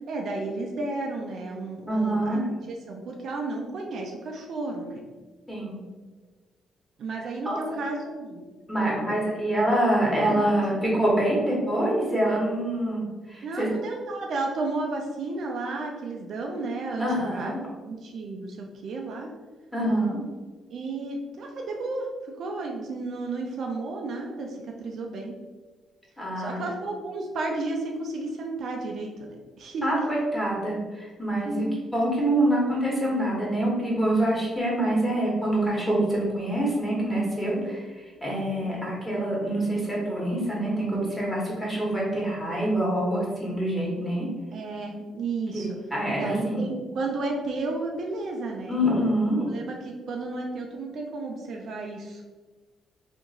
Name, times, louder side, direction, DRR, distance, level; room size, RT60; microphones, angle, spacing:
voice 1, 0.1-5.0 7.0-8.5 8.8-9.1 10.3-10.8 13.4-17.5 17.9-18.6 18.8-19.3 20.7-22.1 22.4-25.4 26.4-29.8 31.4-31.8 38.6-38.8 44.5-45.7 46.2-48.8 49.5-52.2, right 2 dB, 65° right, 1 dB, 0.5 m, -33 dB
voice 2, 1.9-2.6 5.5-5.8 7.4-7.6 8.7-13.7 17.0-17.6 19.7-20.2 26.2-26.6 29.8-31.7 31.9-44.3 45.5-46.6 48.7-49.5, right 1 dB, 10° left, -5 dB, 1.4 m, -26 dB
2.9 x 2.5 x 3.7 m, 1.3 s
cardioid pair, 90°, 0 cm